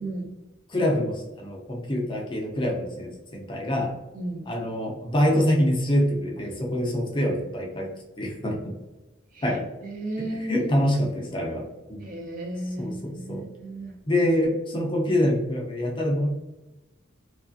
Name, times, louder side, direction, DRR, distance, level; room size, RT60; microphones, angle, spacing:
voice 1, 0.0-0.3 4.1-4.5 9.3-10.6 12.0-13.9, right 1 dB, 45° right, 1 dB, 0.6 m, -34 dB
voice 2, 0.7-3.9 4.5-7.9 8.2-8.7 9.4-9.6 10.3-12.1 12.8-13.4 14.1-16.3, left 1 dB, 25° left, 0 dB, 0.5 m, -25 dB
3.1 x 2.4 x 2.5 m, 1.0 s
head